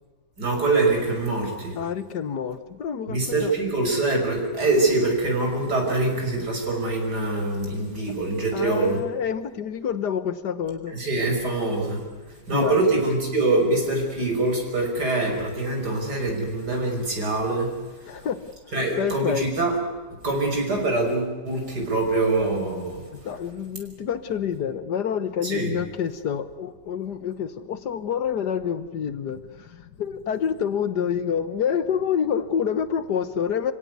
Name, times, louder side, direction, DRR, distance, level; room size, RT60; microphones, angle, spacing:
voice 1, 0.4-1.7 3.1-9.0 10.9-12.0 12.5-17.7 18.7-19.7 20.2-23.0 25.4-25.7, right 2 dB, 65° right, 2 dB, 6.4 m, -24 dB
voice 2, 1.7-3.5 8.5-11.0 12.5-12.8 18.1-18.4 18.7-19.5 23.1-33.7, left 8 dB, 70° left, 13 dB, 1.7 m, -28 dB
27.0 x 17.0 x 9.5 m, 1.3 s
omnidirectional pair, 1.8 m